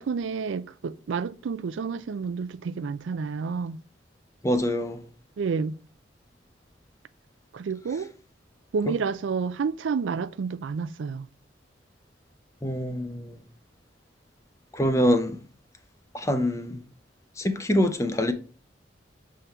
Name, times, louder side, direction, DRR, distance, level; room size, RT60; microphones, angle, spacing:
voice 1, 0.0-3.8 5.4-5.7 7.5-8.1 8.7-11.3, right 5 dB, 85° right, 0.4 m, -30 dB
voice 2, 4.4-5.0 8.9-9.0 12.6-13.4 14.7-15.4 16.1-16.8 17.4-18.3, equal, 15° left, 0.6 m, -25 dB
6.8 x 3.8 x 4.4 m
head